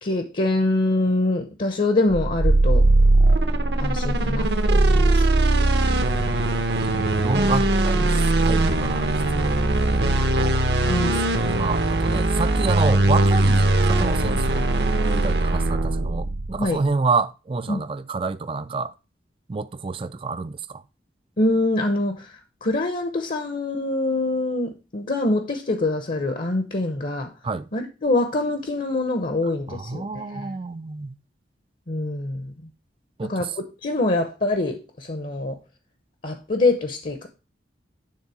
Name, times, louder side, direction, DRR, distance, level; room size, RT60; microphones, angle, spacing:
voice 1, 0.0-2.8 3.8-5.2 10.9-11.5 16.6-16.8 17.7-17.8 21.4-27.3 27.7-30.6 31.9-32.5 33.2-35.6 36.2-37.3, left 2 dB, 50° left, 0.8 m, -25 dB
sound 1, 2.1-16.7, right 2 dB, 65° right, 0.9 m, -20 dB
voice 2, 7.0-8.2 8.4-9.6 9.9-14.6 15.0-18.9 19.5-20.8 27.4-27.7 29.7-31.1 33.2-33.6, right 4 dB, 30° right, 0.4 m, -29 dB
9.7 x 3.7 x 4.8 m
head